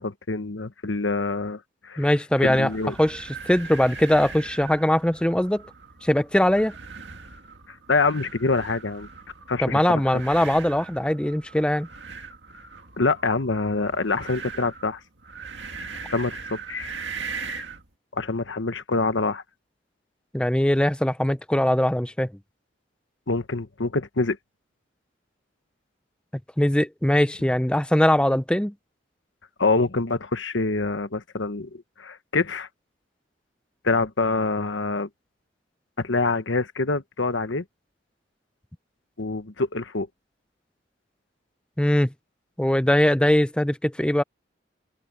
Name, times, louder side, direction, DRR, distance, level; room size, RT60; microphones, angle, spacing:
voice 1, 0.0-2.1 2.4-2.9 7.9-9.1 9.5-10.0 13.0-15.0 16.1-16.9 18.1-19.4 23.3-24.4 29.6-32.7 33.8-35.1 36.0-37.6 39.2-40.1, left 3 dB, 85° left, 1.3 m, -25 dB
voice 2, 2.0-2.7 3.0-5.6 6.0-6.7 9.6-11.9 20.3-22.3 26.6-28.7 41.8-42.1 42.6-44.2, left 1 dB, 5° left, 0.6 m, -21 dB
sound 1, 2.4-17.9, right 4 dB, 70° right, 2.2 m, -40 dB
head